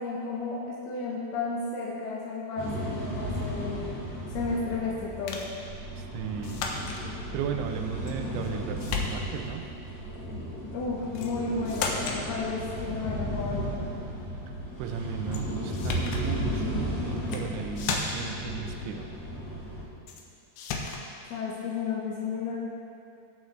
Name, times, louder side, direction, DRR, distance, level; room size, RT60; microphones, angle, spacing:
voice 1, 0.0-3.9 4.3-5.4 10.7-13.9 21.3-22.6, left 4 dB, 70° left, -4 dB, 2.5 m, -33 dB
sound 1, 2.6-19.8, equal, 35° left, 3.1 m, -35 dB
sound 2, 5.3-5.6 6.4-7.0 8.1-8.5 8.8-9.5 11.1-11.4 11.7-12.2 15.3-15.4 15.7-16.3 17.2-17.5 17.8-18.4 20.1-20.2 20.6-21.1, left 4 dB, 85° left, 2.2 m, -33 dB
voice 2, 6.0-6.7 7.3-9.7 14.8-19.1, right 8 dB, 80° right, 5 dB, 2.8 m, -36 dB
18.0 x 7.9 x 3.2 m, 2.7 s
omnidirectional pair, 5.6 m